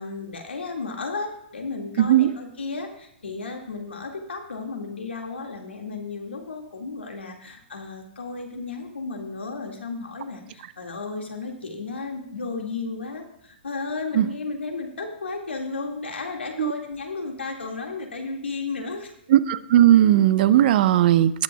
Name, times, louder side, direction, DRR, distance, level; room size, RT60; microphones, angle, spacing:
voice 1, 0.0-19.1, left 4 dB, 85° left, 2 dB, 2.0 m, -33 dB
voice 2, 2.0-2.3 14.1-14.3 16.6-16.7 19.3-21.3, right 12 dB, 55° right, 15 dB, 0.6 m, -17 dB
19.0 x 8.5 x 2.3 m, 0.75 s
hypercardioid pair, 120°, 6 cm